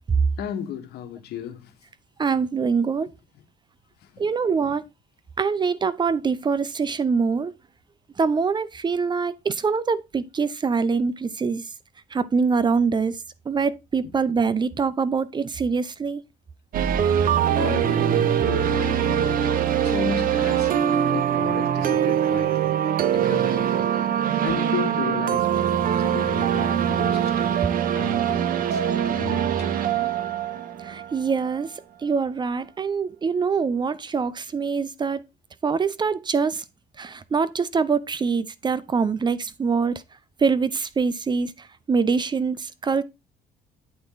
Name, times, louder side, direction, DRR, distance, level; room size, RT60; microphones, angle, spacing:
voice 1, 0.4-1.7 4.0-4.3 4.6-4.8 14.0-14.1 17.6-19.5 19.8-20.7 21.1-22.8 23.1-27.6 27.9-29.8, left 9 dB, 75° left, 1.4 m, -35 dB
voice 2, 2.2-3.1 4.2-4.8 5.4-7.5 8.2-11.6 12.1-13.2 13.5-16.2 30.8-31.7 32.0-35.2 35.6-36.6 37.0-40.0 40.4-41.5 41.9-43.0, right 5 dB, 25° right, 0.5 m, -24 dB
sound 1, 16.7-31.6, right 9 dB, 55° right, 0.9 m, -23 dB
8.7 x 4.3 x 3.9 m
cardioid pair, 110°, 17 cm